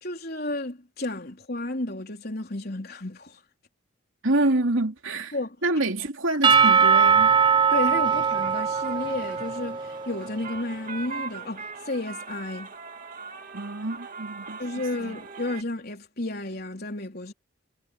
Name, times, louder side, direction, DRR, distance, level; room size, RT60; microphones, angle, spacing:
voice 1, 0.0-3.4 5.3-5.6 7.7-12.7 14.6-17.3, left 2 dB, 50° left, 4.1 m, -32 dB
voice 2, 4.2-5.4 5.6-7.3 13.5-15.2, right 2 dB, 80° right, 3.0 m, -27 dB
Percussion / Church bell, 6.4-10.3, right 6 dB, 25° right, 0.8 m, -21 dB
sound 1, 6.9-15.6, right 4 dB, 40° right, 2.3 m, -41 dB
head